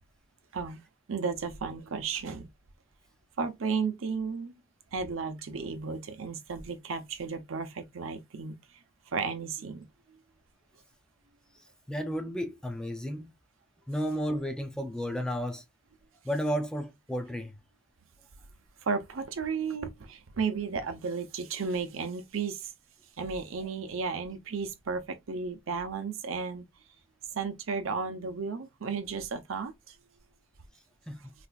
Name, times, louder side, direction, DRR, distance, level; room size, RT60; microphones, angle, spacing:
voice 1, 1.1-2.5 3.4-4.5 4.9-8.6 9.1-9.8 18.8-22.7 23.2-26.6 27.3-30.0, right 5 dB, 80° right, 0.6 m, -33 dB
voice 2, 11.9-13.3 13.9-15.6 16.2-17.6 31.1-31.3, equal, 5° left, 0.4 m, -33 dB
4.1 x 2.4 x 2.3 m
head